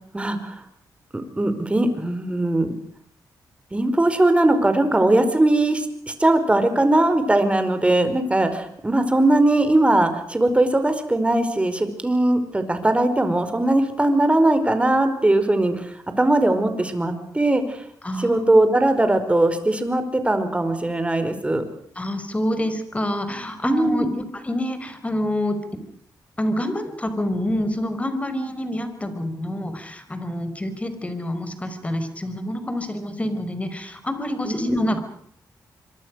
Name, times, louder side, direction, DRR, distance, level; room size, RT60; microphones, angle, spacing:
voice 1, 0.1-0.6 1.1-2.7 3.7-17.8 18.2-21.6 23.6-24.2 34.4-34.8, right 1 dB, 15° right, 9 dB, 4.9 m, -20 dB
voice 2, 18.0-18.5 22.0-24.1 24.3-25.6 26.4-35.0, left 1 dB, 15° left, 9 dB, 5.3 m, -27 dB
26.0 x 23.5 x 6.5 m, 0.65 s
cardioid pair, 95°, 8 cm